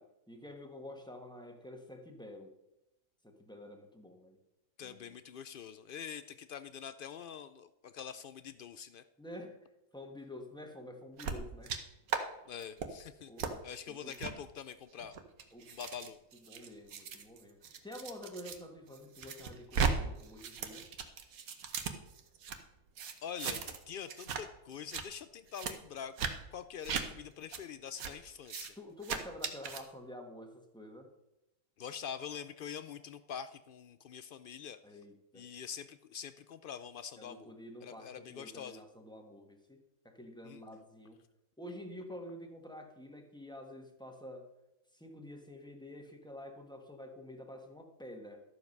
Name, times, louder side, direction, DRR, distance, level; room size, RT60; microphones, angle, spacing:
voice 1, 0.0-2.5 3.2-4.4 4.8-5.2 9.2-9.6 9.9-11.8 13.3-14.2 15.5-15.8 16.4-20.9 28.8-31.1 34.8-35.4 37.2-39.8 40.0-41.2 41.6-44.5 44.9-48.4, left 1 dB, 5° left, 3 dB, 1.2 m, -49 dB
voice 2, 4.8-9.0 12.5-13.3 13.6-15.2 15.7-16.2 23.2-28.7 31.8-34.8 35.3-37.5 37.8-38.8 40.4-40.6, left 8 dB, 80° left, 12 dB, 0.4 m, -45 dB
sound 1, 11.2-11.8 12.1-12.2 12.6-12.9 13.4-13.5 14.1-14.3 15.0-18.6 18.9-19.9 20.2-22.6 23.0-23.8 24.1-24.4 24.7-25.0 25.5-25.7 26.2-26.3 26.8-27.0 27.5-27.6 28.0-28.1 28.5-28.7 29.0-29.8, right 6 dB, 85° right, 1.4 m, -37 dB
12.5 x 7.1 x 5.3 m, 0.92 s
omnidirectional pair, 1.5 m